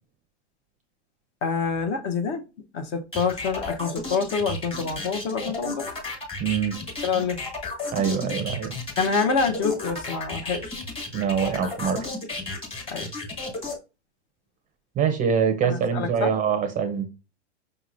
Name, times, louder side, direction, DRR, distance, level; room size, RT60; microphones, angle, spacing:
voice 1, 1.4-2.4 2.7-5.8 7.0-7.4 9.0-10.8 12.9-13.1 15.6-16.3, left 5 dB, 35° left, 0.7 m, -26 dB
sound 1, 3.1-13.7, left 2 dB, 15° left, 1.4 m, -33 dB
voice 2, 6.4-6.8 7.9-8.7 11.1-12.1 15.0-17.1, right 7 dB, 20° right, 0.6 m, -24 dB
5.3 x 2.9 x 2.5 m
hypercardioid pair, 115°, 35 cm